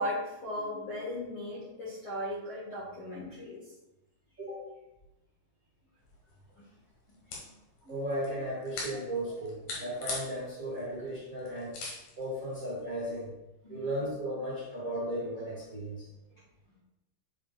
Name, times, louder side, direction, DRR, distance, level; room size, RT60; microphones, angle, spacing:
voice 1, 0.0-3.6 7.3-7.4 7.8-8.0 8.9-9.0 13.6-14.0 16.3-16.4, left 1 dB, 45° left, -7 dB, 1.9 m, -37 dB
voice 2, 4.4-4.7 7.9-11.8 12.2-13.3 13.7-16.1, right 1 dB, 25° right, -8 dB, 2.1 m, -35 dB
sound 1, 6.0-13.3, left 3 dB, 65° left, 3.0 m, -44 dB
8.7 x 7.2 x 2.4 m, 0.92 s
omnidirectional pair, 4.5 m